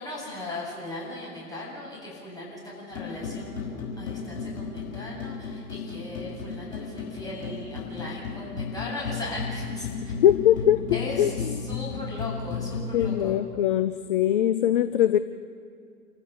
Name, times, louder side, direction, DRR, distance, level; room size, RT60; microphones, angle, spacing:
voice 1, 0.0-10.1 10.9-13.4, left 2 dB, 5° left, -6 dB, 7.9 m, -38 dB
sound 1, 2.9-13.2, left 5 dB, 55° left, 6.9 m, -34 dB
voice 2, 10.2-11.7 12.9-15.2, left 11 dB, 35° left, 12 dB, 0.6 m, -22 dB
27.5 x 15.5 x 7.1 m, 2.3 s
figure-of-eight pair, 110°, 49 cm